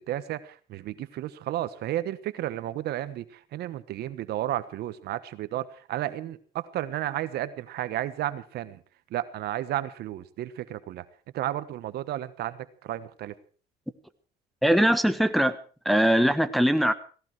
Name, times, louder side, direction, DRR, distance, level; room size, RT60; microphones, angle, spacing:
voice 1, 0.0-8.8 9.1-11.0 11.3-13.3, right 13 dB, 75° right, 13 dB, 1.3 m, -32 dB
voice 2, 14.6-15.6 15.8-16.9, equal, ahead, 8 dB, 1.3 m, -21 dB
17.5 x 17.0 x 4.8 m, 0.41 s
cardioid pair, 110°, 17 cm